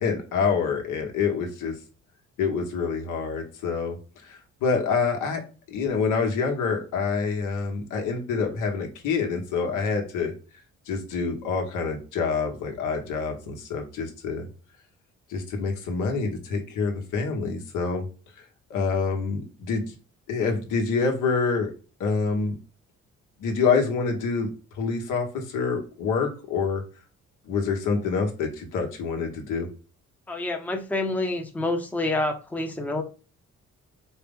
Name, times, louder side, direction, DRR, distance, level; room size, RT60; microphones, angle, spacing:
voice 1, 0.0-1.7 2.4-4.0 4.2-5.4 5.7-10.3 10.9-14.5 15.3-18.1 18.7-19.9 20.3-21.7 22.0-22.6 23.4-24.5 24.8-26.8 27.5-29.7, left 5 dB, 85° left, 3 dB, 1.0 m, -26 dB
voice 2, 30.3-33.0, left 2 dB, 5° left, 3 dB, 0.6 m, -27 dB
4.4 x 2.0 x 3.5 m, 0.35 s
cardioid pair, 90°, 30 cm